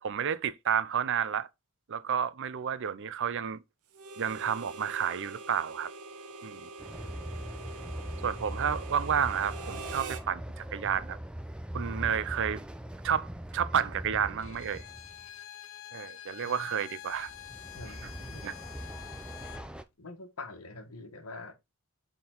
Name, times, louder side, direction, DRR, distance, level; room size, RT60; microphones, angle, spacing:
voice 1, 0.0-1.5 1.9-3.6 4.2-5.9 6.4-6.6 8.2-11.2 11.7-12.6 13.0-13.3 13.5-14.8 15.9-17.3 18.0-18.1 18.4-18.5, right 8 dB, 60° right, 0.5 m, -31 dB
Harmonica, 3.9-10.3, right 3 dB, 85° right, 0.9 m, -44 dB
Train, 6.8-15.3 17.1-19.8, right 1 dB, 5° right, 0.4 m, -41 dB
Bowed string instrument, 14.4-19.7, left 12 dB, 60° left, 0.6 m, -47 dB
voice 2, 17.7-18.6 20.0-21.5, left 3 dB, 80° left, 1.4 m, -45 dB
6.9 x 3.8 x 3.8 m
head